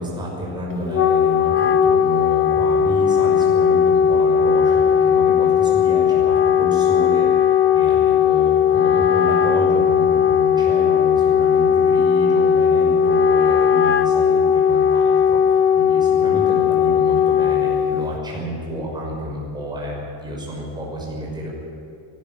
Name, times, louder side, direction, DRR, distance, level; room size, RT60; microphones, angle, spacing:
voice 1, 0.0-21.5, right 1 dB, 10° right, -4 dB, 6.1 m, -30 dB
Wind instrument woodwind instrument, 0.7-18.2, left 8 dB, 25° left, 0.8 m, -17 dB
23.5 x 13.0 x 9.5 m, 2.6 s
cardioid pair, 175°, 48 cm